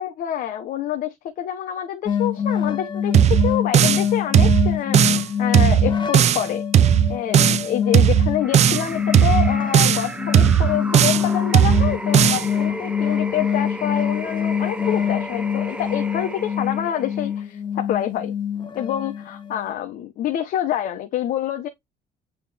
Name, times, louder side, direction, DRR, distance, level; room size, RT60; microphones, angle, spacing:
voice 1, 0.0-6.6 7.1-18.3 18.7-21.7, left 11 dB, 60° left, 1.2 m, -27 dB
sound 1, 2.1-19.7, left 8 dB, 30° left, 0.9 m, -25 dB
sound 2, 3.1-4.1 4.3-5.3 5.5-6.5 6.7-7.7 7.9-8.9 9.1-10.1 10.3-11.3 11.5-12.5, right 9 dB, 45° right, 0.6 m, -16 dB
sound 3, 8.4-17.4, right 1 dB, 5° right, 0.8 m, -35 dB
9.0 x 4.2 x 3.5 m
cardioid pair, 150°, 16 cm